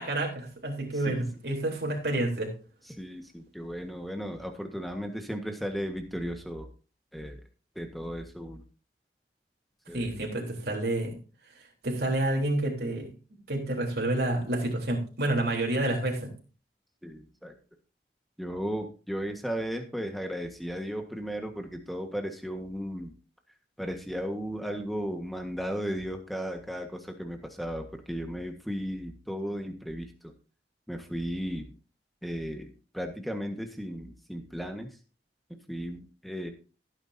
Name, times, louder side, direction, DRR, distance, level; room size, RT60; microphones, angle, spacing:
voice 1, 0.0-2.5 9.9-11.2 11.8-13.1 13.5-16.3, right 1 dB, 65° right, -1 dB, 3.6 m, -29 dB
voice 2, 2.9-6.7 7.1-7.4 7.7-8.6 9.9-10.1 17.0-17.5 18.4-23.1 23.8-30.3 30.9-31.7 32.2-34.9 35.7-36.5, equal, ahead, 4 dB, 1.5 m, -35 dB
16.0 x 9.0 x 2.8 m, 0.36 s
head